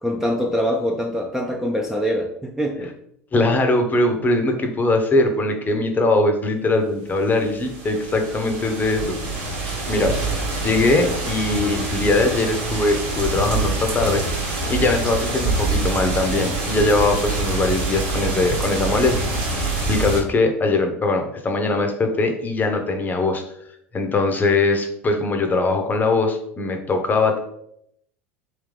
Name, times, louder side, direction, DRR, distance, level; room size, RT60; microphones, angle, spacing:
voice 1, 0.0-2.9, equal, 5° right, 0 dB, 0.5 m, -24 dB
voice 2, 3.3-10.1 10.6-19.2 19.5-23.4 23.9-27.4, left 2 dB, 25° left, 5 dB, 0.8 m, -21 dB
sound 1, 7.3-20.2, right 3 dB, 65° right, 1.2 m, -25 dB
3.6 x 3.1 x 3.2 m, 0.73 s
hypercardioid pair, 80°, 8 cm